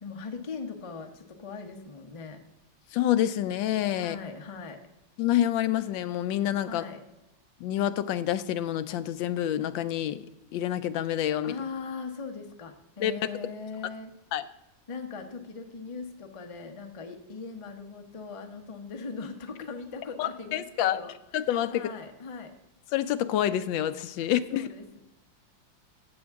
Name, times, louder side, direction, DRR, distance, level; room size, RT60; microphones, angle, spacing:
voice 1, 0.0-2.4 3.9-4.8 6.6-7.0 11.4-14.1 14.9-21.1 21.7-22.5 24.5-25.0, left 4 dB, 35° left, 5 dB, 0.5 m, -40 dB
voice 2, 2.9-4.2 5.2-6.8 7.6-10.3 10.5-11.6 13.0-13.2 14.3-14.4 20.2-21.0 21.3-21.9 22.9-24.7, left 11 dB, 80° left, 13 dB, 1.3 m, -27 dB
13.5 x 7.9 x 3.5 m, 0.94 s
omnidirectional pair, 2.1 m